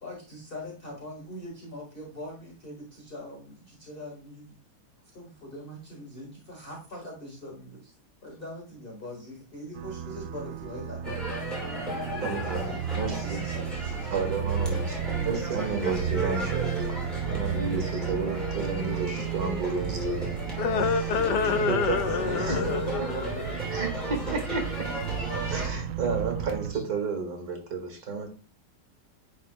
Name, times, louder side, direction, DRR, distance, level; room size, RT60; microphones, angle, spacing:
voice 1, 0.0-4.6 5.1-7.9 8.2-11.3 11.9-12.8 13.2-14.1 22.1-23.1, left 1 dB, 35° left, 1.7 m, -41 dB
sound 1, 9.7-26.7, right 8 dB, 90° right, 1.2 m, -33 dB
sound 2, 11.0-25.7, equal, ahead, 2.6 m, -36 dB
voice 2, 12.2-13.5 14.1-16.9 17.3-20.4 21.5-22.7 23.7-24.9 25.5-28.3, right 4 dB, 60° right, 2.1 m, -32 dB
voice 3, 20.6-23.6, left 6 dB, 75° left, 1.4 m, -27 dB
10.5 x 4.1 x 2.2 m
omnidirectional pair, 1.9 m